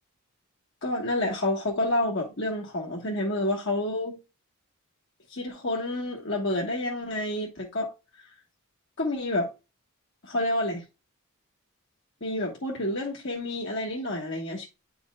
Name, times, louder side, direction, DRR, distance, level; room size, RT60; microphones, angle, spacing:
voice 1, 0.8-4.2 5.3-7.9 8.2-8.3 9.0-9.5 10.2-10.8 12.2-14.7, left 1 dB, 55° left, 1.4 m, -29 dB
9.5 x 5.3 x 2.3 m
head